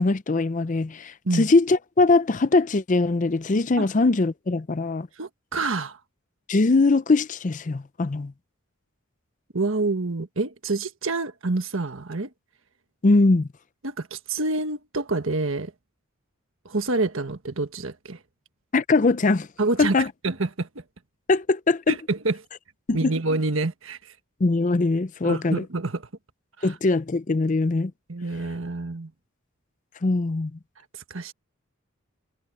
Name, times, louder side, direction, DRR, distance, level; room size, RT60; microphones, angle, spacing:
voice 1, 0.0-5.1 6.5-8.3 13.0-13.5 18.7-19.5 19.8-20.1 21.3-21.9 22.9-23.1 24.4-25.6 26.6-27.9 30.0-30.5, left 3 dB, 35° left, 0.5 m, -21 dB
voice 2, 5.2-6.0 9.5-12.3 13.8-15.7 16.6-18.2 19.6-19.9 20.2-20.7 21.9-22.4 22.9-24.0 25.2-26.0 26.6-26.7 28.1-29.1 31.1-31.3, right 3 dB, 65° right, 1.5 m, -27 dB
head